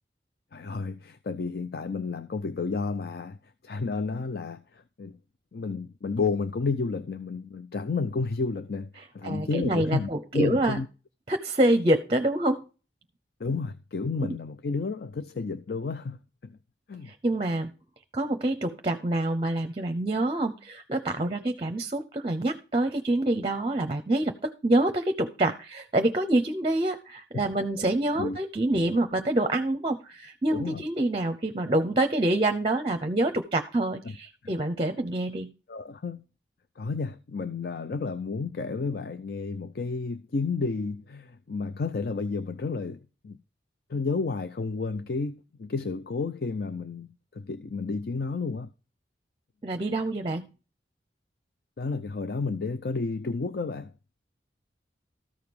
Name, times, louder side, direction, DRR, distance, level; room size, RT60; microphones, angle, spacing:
voice 1, 0.5-3.4 3.6-5.1 5.5-8.9 9.1-10.9 13.4-16.6 16.9-17.1 27.3-27.4 28.2-28.4 30.5-30.8 34.1-34.2 35.7-36.2 36.8-43.4 43.9-48.7 51.8-53.9, left 4 dB, 55° left, 0.5 m, -31 dB
voice 2, 9.2-10.8 11.3-12.6 14.2-14.3 17.1-17.7 18.1-35.5 49.6-50.5, right 1 dB, 30° right, 0.7 m, -26 dB
13.5 x 4.8 x 5.3 m
head